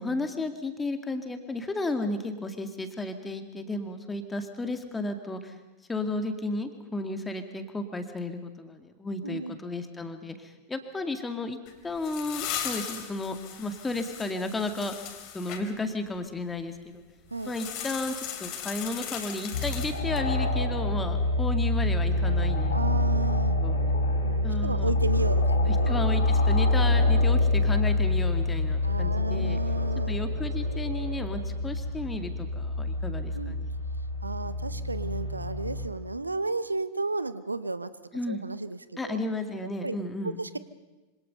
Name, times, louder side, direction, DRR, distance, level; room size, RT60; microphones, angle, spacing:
voice 1, 0.0-5.6 5.9-11.6 11.8-15.0 15.3-17.0 17.4-22.8 23.6-23.8 24.4-24.9 25.7-29.6 30.1-33.7 38.1-38.4 39.0-40.4, left 2 dB, 10° left, 7 dB, 2.3 m, -33 dB
voice 2, 9.2-9.6 17.3-17.5 22.7-23.6 24.2-25.9 28.8-30.2 33.3-33.5 34.2-37.9 38.3-39.2 39.8-40.0 40.2-40.6, right 3 dB, 80° right, 15 dB, 0.8 m, -33 dB
sound 1, 11.7-15.6 17.4-20.3, left 9 dB, 40° left, 3.3 m, -38 dB
sound 2, 19.5-35.9, left 2 dB, 65° left, 5.2 m, -26 dB
26.5 x 25.5 x 5.6 m, 1.1 s
figure-of-eight pair, 90°, 0 cm